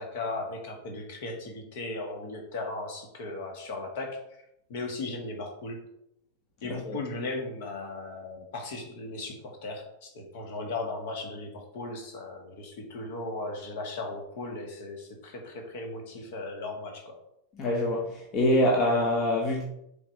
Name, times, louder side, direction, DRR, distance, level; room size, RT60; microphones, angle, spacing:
voice 1, 0.0-4.2 4.7-5.8 6.6-17.2, left 2 dB, 50° left, 1.8 m, -37 dB
voice 2, 17.6-19.6, left 1 dB, 35° left, 1.2 m, -25 dB
7.1 x 4.0 x 4.3 m
figure-of-eight pair, 90°, 0 cm